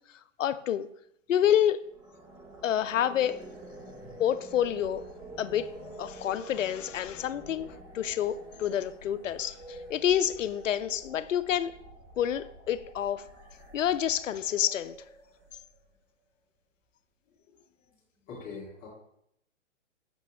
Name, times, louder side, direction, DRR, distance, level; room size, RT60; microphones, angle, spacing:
voice 1, 0.4-0.9 1.3-1.8 2.6-3.4 4.2-5.0 5.4-11.7 12.2-13.2 13.7-15.0, left 10 dB, 85° left, 14 dB, 0.5 m, -28 dB
sound 1, 1.8-16.0, right 2 dB, 5° right, 0.6 m, -48 dB
voice 2, 18.3-18.9, left 4 dB, 20° left, -4 dB, 1.6 m, -43 dB
6.2 x 5.3 x 3.3 m, 0.74 s
hypercardioid pair, 135°, 37 cm